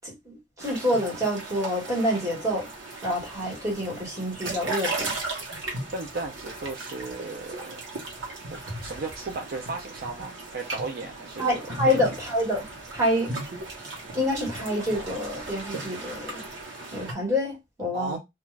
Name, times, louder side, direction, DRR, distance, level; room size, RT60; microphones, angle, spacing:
voice 1, 0.0-2.7 3.0-5.1 11.4-12.6 12.9-13.3 14.1-16.4 16.9-18.2, left 1 dB, 20° right, 1.3 m, -27 dB
sound 1, 0.6-17.1, right 2 dB, 80° right, 1.0 m, -37 dB
voice 2, 5.9-7.9 8.8-12.0 17.9-18.2, right 3 dB, 55° right, 0.5 m, -35 dB
2.4 x 2.4 x 3.0 m
head